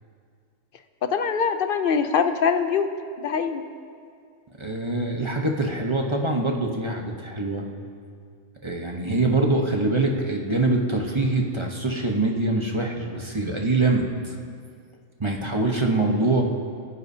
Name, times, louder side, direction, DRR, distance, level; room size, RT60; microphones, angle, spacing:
voice 1, 1.0-2.9 3.2-3.6, left 6 dB, 55° left, 8 dB, 0.7 m, -23 dB
voice 2, 4.6-7.6 8.6-14.3 15.2-16.4, right 2 dB, 25° right, 1 dB, 0.9 m, -24 dB
25.0 x 9.8 x 2.8 m, 2.2 s
omnidirectional pair, 1.3 m